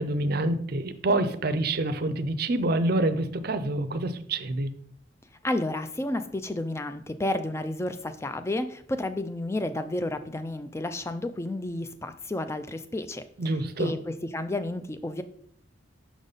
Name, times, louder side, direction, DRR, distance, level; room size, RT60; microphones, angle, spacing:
voice 1, 0.0-4.7 13.4-13.9, right 2 dB, 45° right, 10 dB, 0.5 m, -27 dB
voice 2, 5.4-13.2 13.8-14.0 14.3-15.2, left 1 dB, 15° left, 10 dB, 0.3 m, -31 dB
6.1 x 5.1 x 4.0 m, 0.64 s
head